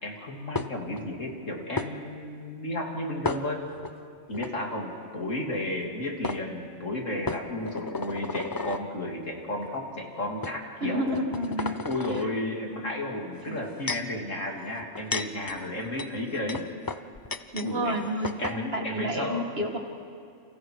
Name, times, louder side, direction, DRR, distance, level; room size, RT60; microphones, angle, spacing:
voice 1, 0.0-3.6 4.3-11.2 11.6-16.7 17.6-17.9 18.2-19.5, left 1 dB, 65° left, 0 dB, 3.5 m, -33 dB
sound 1, 0.6-1.0 1.8-1.9 3.2-3.9 4.3-4.5 5.8-5.9 6.2-6.4 7.3-8.9 9.6-9.8 10.4-10.6 11.1-12.3 13.4-14.2 14.8-17.7 18.0-18.1 18.2-18.6, left 3 dB, 25° left, 0.4 m, -33 dB
voice 2, 10.8-11.8 12.1-12.3 13.5-13.6 17.5-19.8, equal, 45° right, 3 dB, 2.2 m, -30 dB
30.0 x 29.0 x 4.9 m, 2.4 s
omnidirectional pair, 1.4 m